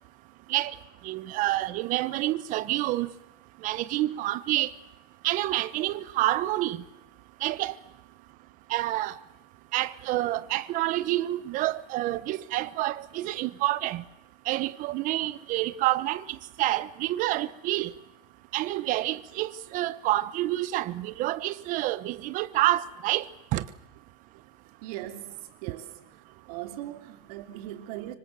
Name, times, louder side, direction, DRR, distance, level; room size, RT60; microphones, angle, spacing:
voice 1, 1.0-3.1 3.6-4.7 5.2-6.8 7.4-7.7 8.7-9.1 9.7-14.0 14.5-17.9 18.5-23.6, right 16 dB, 40° right, 1.0 m, -28 dB
voice 2, 24.8-26.2 26.5-28.2, right 13 dB, 75° right, 3.0 m, -40 dB
25.5 x 24.5 x 7.7 m
cardioid pair, 170°, 20 cm